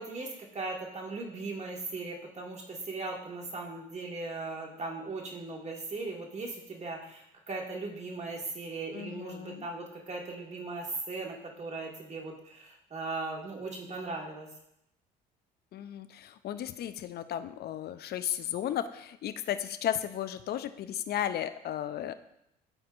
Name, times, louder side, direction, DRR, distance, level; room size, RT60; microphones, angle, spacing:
voice 1, 0.0-14.5, right 3 dB, 30° right, 0 dB, 1.9 m, -38 dB
voice 2, 8.9-9.7 15.7-22.2, left 10 dB, 50° left, 11 dB, 0.6 m, -34 dB
12.5 x 4.4 x 2.5 m, 0.79 s
hypercardioid pair, 60°, 21 cm